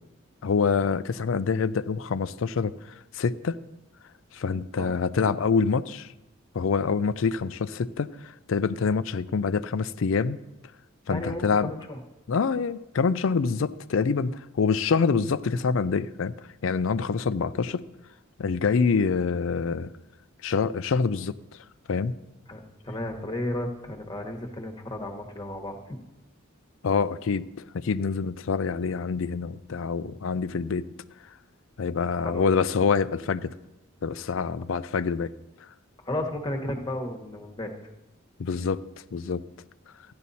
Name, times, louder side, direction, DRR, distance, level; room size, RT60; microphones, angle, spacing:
voice 1, 0.4-2.7 3.1-3.6 4.3-6.1 6.5-10.4 11.1-11.7 12.3-16.3 16.6-17.8 18.4-19.9 20.4-21.4 21.9-22.1 26.8-30.8 31.8-33.5 34.0-35.3 38.4-38.8 39.1-39.4, left 5 dB, 70° left, 16 dB, 0.4 m, -26 dB
voice 2, 11.1-12.0 22.5-26.0 32.2-32.5 36.0-37.7, left 1 dB, 20° left, 3 dB, 1.2 m, -33 dB
14.0 x 10.5 x 4.2 m, 0.96 s
head